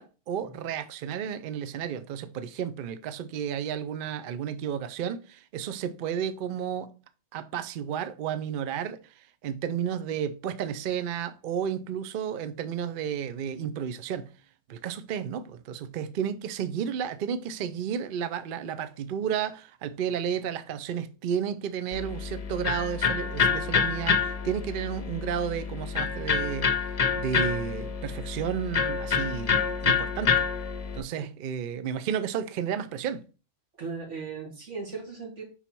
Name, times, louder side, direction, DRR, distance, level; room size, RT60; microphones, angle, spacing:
voice 1, 0.0-6.9 7.3-14.3 14.7-30.4 30.9-33.2, right 8 dB, 60° right, 0.6 m, -32 dB
Electric guitar, 21.9-31.0, left 6 dB, 40° left, 0.6 m, -27 dB
voice 2, 33.8-35.4, right 4 dB, 90° right, 2.4 m, -37 dB
5.6 x 4.2 x 4.4 m
omnidirectional pair, 1.2 m